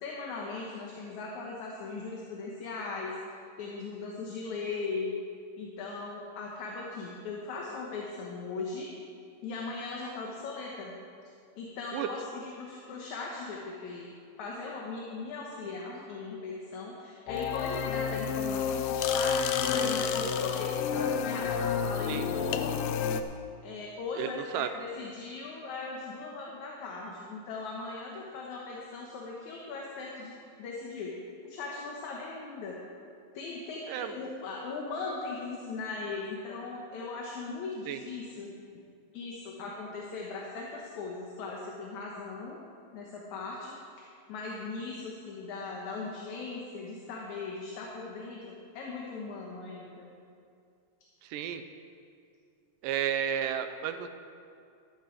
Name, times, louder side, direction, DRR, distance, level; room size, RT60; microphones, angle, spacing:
voice 1, 0.0-5.2 5.6-8.9 9.4-10.9 11.6-19.4 19.7-22.7 23.6-31.1 31.4-32.8 33.3-38.5 39.1-42.6 42.9-43.7 44.3-50.1, left 3 dB, 65° left, -2 dB, 2.3 m, -39 dB
sound 1, 17.3-23.2, left 7 dB, 85° left, 1.6 m, -30 dB
voice 2, 24.2-24.7 33.9-34.2 37.9-38.0 51.2-51.6 52.8-54.1, right 9 dB, 80° right, 9 dB, 2.1 m, -32 dB
13.5 x 11.5 x 4.6 m, 2.4 s
omnidirectional pair, 4.0 m